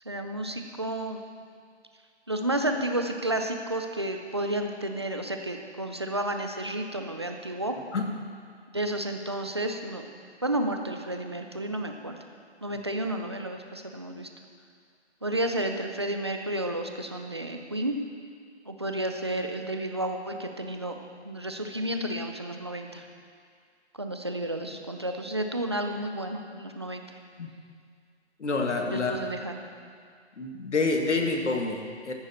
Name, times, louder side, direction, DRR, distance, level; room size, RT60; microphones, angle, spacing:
voice 1, 0.1-1.2 2.3-7.8 8.7-10.1 10.4-12.1 12.6-14.3 15.2-18.0 18.7-21.0 21.2-23.0 24.0-27.0 28.8-29.6, right 1 dB, 25° right, 4 dB, 0.5 m, -31 dB
voice 2, 28.4-29.2 30.4-32.1, left 3 dB, 80° left, 2 dB, 2.0 m, -27 dB
14.5 x 10.5 x 4.4 m, 2.2 s
hypercardioid pair, 170°, 35 cm